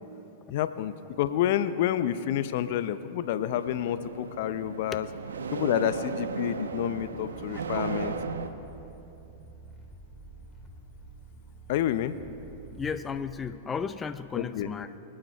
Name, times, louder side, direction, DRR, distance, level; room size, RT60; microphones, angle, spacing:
voice 1, 0.5-5.1 5.5-8.1 11.7-12.2 14.4-14.7, left 11 dB, 60° left, 13 dB, 0.6 m, -29 dB
sound 1, 3.5-8.5, right 5 dB, 85° right, 0.8 m, -35 dB
sound 2, 6.3-13.6, right 2 dB, ahead, 2.6 m, -49 dB
voice 2, 12.7-15.0, left 6 dB, 20° left, 11 dB, 0.5 m, -34 dB
25.5 x 8.9 x 4.5 m, 2.9 s
hypercardioid pair, 110°, 0 cm